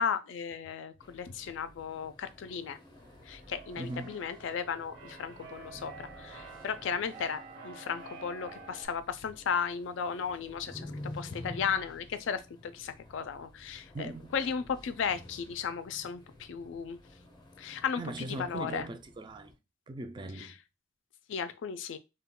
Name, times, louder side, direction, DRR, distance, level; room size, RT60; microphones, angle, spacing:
voice 1, 0.0-2.8 3.3-17.0 17.6-18.9 20.4-20.5 21.3-22.0, left 6 dB, 70° left, 0.4 m, -35 dB
sound 1, 1.0-19.6, left 1 dB, 20° left, 0.6 m, -51 dB
Keyboard (musical), 3.0-8.9, right 4 dB, 60° right, 0.8 m, -49 dB
voice 2, 3.8-4.2 13.9-14.4 18.0-19.5 19.9-20.6, right 2 dB, 25° right, 0.3 m, -40 dB
2.2 x 2.2 x 3.6 m
head